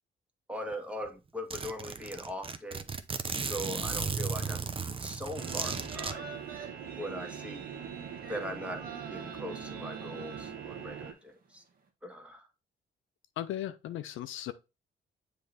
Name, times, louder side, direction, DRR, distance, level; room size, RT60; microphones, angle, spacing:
voice 1, 0.5-2.8 3.4-4.6 5.0-6.2 6.9-7.6 8.3-8.8 9.1-11.6 12.0-12.5, equal, 5° right, 1.4 m, -40 dB
Zipper (clothing), 0.7-0.8 1.1-1.2 1.5-6.1, right 5 dB, 25° right, 0.7 m, -35 dB
sound 1, 5.3-11.1, right 8 dB, 75° right, 1.2 m, -43 dB
sound 2, 5.4-11.0 11.4-11.5, right 5 dB, 45° right, 1.5 m, -47 dB
voice 2, 13.4-14.5, left 12 dB, 80° left, 0.6 m, -37 dB
7.5 x 3.4 x 4.1 m
cardioid pair, 90°, 20 cm